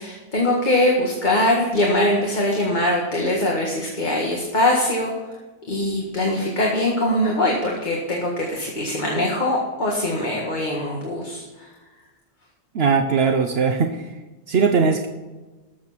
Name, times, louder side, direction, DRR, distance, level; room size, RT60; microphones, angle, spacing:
voice 1, 0.0-5.1 5.7-11.7, left 1 dB, 45° left, -2 dB, 1.9 m, -22 dB
voice 2, 12.7-14.1 14.5-15.1, right 5 dB, 70° right, 6 dB, 1.0 m, -19 dB
13.0 x 7.3 x 5.9 m, 1.2 s
omnidirectional pair, 1.1 m